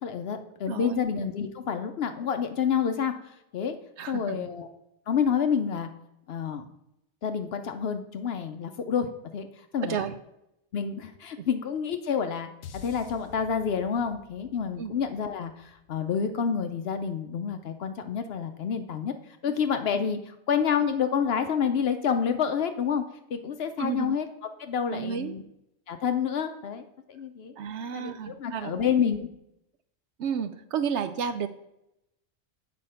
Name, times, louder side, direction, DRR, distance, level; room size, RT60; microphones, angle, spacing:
voice 1, 0.0-3.8 4.1-4.7 5.1-5.9 6.3-6.7 7.2-10.0 10.7-23.0 23.3-24.3 24.6-25.4 25.9-27.5 27.9-29.3, left 7 dB, 60° left, 8 dB, 0.7 m, -28 dB
voice 2, 0.7-1.0 4.0-4.5 9.9-10.1 11.4-11.5 14.8-14.9 23.8-24.2 24.9-25.3 27.6-28.9 30.2-31.5, right 7 dB, 70° right, 11 dB, 0.8 m, -32 dB
sound 1, 12.6-17.0, left 8 dB, 80° left, 1.1 m, -49 dB
8.5 x 4.3 x 5.5 m, 0.84 s
omnidirectional pair, 1.3 m